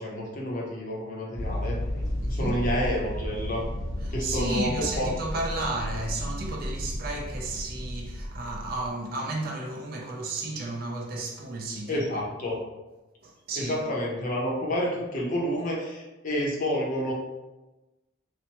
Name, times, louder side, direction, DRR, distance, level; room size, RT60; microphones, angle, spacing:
voice 1, 0.0-1.8 2.3-3.7 4.1-5.1 11.9-12.6 13.6-17.1, equal, 40° left, 0.6 m, -29 dB
sound 1, 1.4-8.9, equal, 20° right, 0.9 m, -33 dB
voice 2, 2.2-2.6 4.0-12.2 13.2-13.8, right 2 dB, 50° right, 0.4 m, -33 dB
2.9 x 2.1 x 2.8 m
head